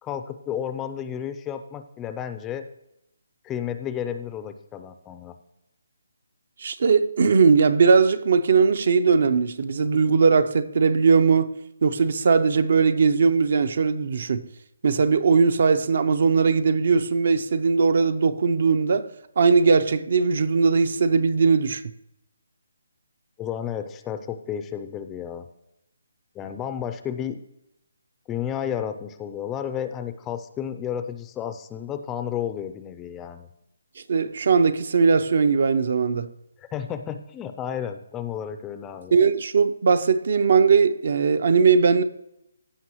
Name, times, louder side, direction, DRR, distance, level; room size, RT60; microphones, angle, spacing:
voice 1, 0.0-2.7 3.4-5.4 23.4-25.5 26.4-27.4 28.3-33.5 36.6-39.2, left 9 dB, 10° left, 0.4 m, -32 dB
voice 2, 6.6-11.6 11.8-14.5 14.8-19.1 19.4-21.8 34.1-36.3 39.1-42.0, right 5 dB, 55° right, 0.6 m, -19 dB
15.5 x 5.5 x 3.0 m
hypercardioid pair, 170°, 0 cm